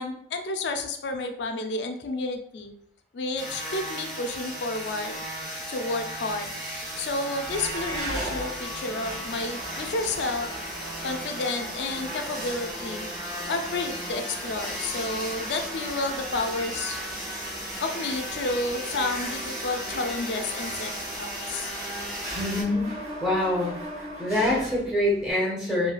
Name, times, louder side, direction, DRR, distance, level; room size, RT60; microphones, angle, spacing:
voice 1, 0.0-2.7 3.1-5.2 5.7-6.5 7.0-10.5 11.0-13.1 13.5-17.0 17.8-21.7, left 2 dB, 75° left, 5 dB, 0.4 m, -31 dB
sound 1, 3.4-22.6, equal, 20° right, 1.3 m, -35 dB
Livestock farm animals working animals, 7.4-8.3, right 3 dB, 55° right, 0.5 m, -36 dB
Mechanisms, 7.9-25.3, right 1 dB, 40° right, 0.8 m, -40 dB
voice 2, 22.3-22.9 23.2-23.7 24.2-25.9, left 1 dB, 5° right, -5 dB, 0.7 m, -25 dB
3.1 x 2.7 x 2.2 m, 0.68 s
head